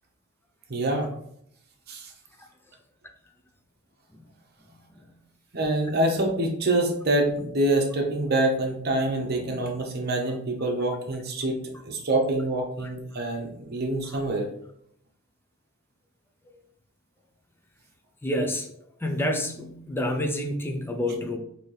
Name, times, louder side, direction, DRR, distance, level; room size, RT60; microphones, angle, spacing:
voice 1, 0.7-1.1 1.9-2.1 5.5-14.5, right 1 dB, 50° right, 2 dB, 0.8 m, -26 dB
voice 2, 18.2-18.7 19.0-21.4, left 1 dB, 10° left, 4 dB, 0.4 m, -28 dB
4.0 x 2.7 x 3.2 m, 0.71 s
head